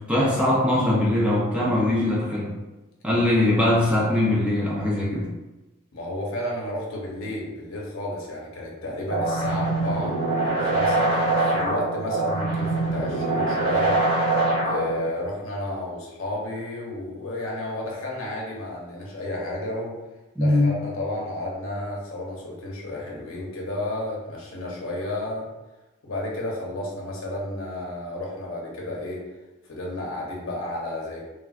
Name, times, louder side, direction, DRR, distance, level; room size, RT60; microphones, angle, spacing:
voice 1, 0.0-2.6 3.0-5.3 20.4-20.7, left 1 dB, 5° right, -6 dB, 0.4 m, -21 dB
voice 2, 5.9-10.2 10.4-14.0 14.6-20.0 20.4-25.5 26.0-29.2 29.6-31.3, left 1 dB, 70° left, -2 dB, 0.8 m, -32 dB
sound 1, 9.1-15.1, right 2 dB, 40° right, 1.4 m, -24 dB
3.3 x 2.4 x 2.4 m, 1.1 s
head